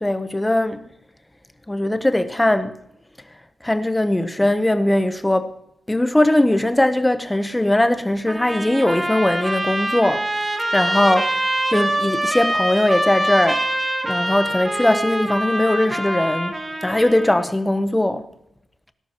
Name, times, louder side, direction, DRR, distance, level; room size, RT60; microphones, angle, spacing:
voice 1, 0.0-0.9 1.7-2.8 3.6-5.5 5.9-10.3 10.7-13.6 14.0-16.5 16.8-18.3, left 1 dB, 10° left, 0.8 m, -20 dB
Trumpet, 8.3-17.5, right 1 dB, 20° right, 1.9 m, -24 dB
18.0 x 11.0 x 2.9 m
wide cardioid pair, 130°, 0 cm